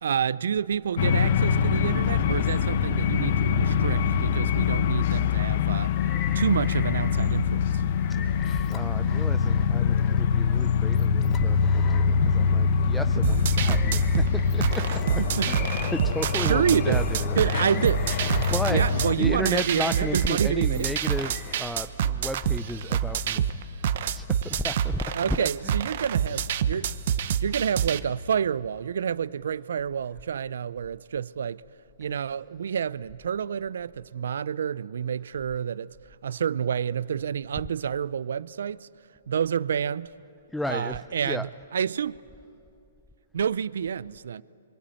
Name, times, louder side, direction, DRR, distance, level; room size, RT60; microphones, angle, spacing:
voice 1, 0.0-6.0 6.3-7.8 15.4-15.5 16.4-17.0 17.4-18.0 18.7-20.8 25.2-26.9 27.4-31.6 32.0-35.9 36.2-38.9 39.3-40.1 40.7-42.2 43.3-44.4, right 8 dB, 75° right, 0.6 m, -28 dB
sound 1, 1.0-19.1, left 6 dB, 55° left, 1.0 m, -24 dB
sound 2, 5.8-7.4 7.7-12.8 13.3-21.7, left 7 dB, 25° left, 1.3 m, -43 dB
voice 2, 8.1-15.6 15.9-17.4 17.7-17.9 18.2-18.8 19.2-23.5 23.8-25.7 26.8-26.9 32.0-32.2 40.5-41.5, left 1 dB, ahead, 0.5 m, -34 dB
sound 3, 13.2-28.0, right 9 dB, 55° right, 1.0 m, -27 dB
27.0 x 24.5 x 9.0 m
hypercardioid pair, 140°, 0 cm